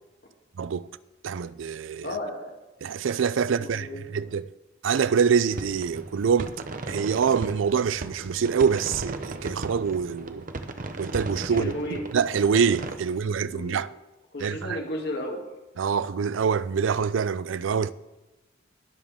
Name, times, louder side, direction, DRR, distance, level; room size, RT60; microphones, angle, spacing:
voice 1, 0.6-0.9 1.2-2.2 2.8-4.5 4.8-6.5 6.9-10.4 11.0-13.9 14.4-14.8 15.8-17.9, right 6 dB, 90° right, 0.4 m, -25 dB
voice 2, 2.0-2.6 3.6-4.3 11.5-12.0 13.4-13.8 14.3-15.4, left 1 dB, 60° left, 2.5 m, -34 dB
sound 1, 5.5-13.0, right 2 dB, 45° right, 0.8 m, -36 dB
21.5 x 7.3 x 3.6 m
head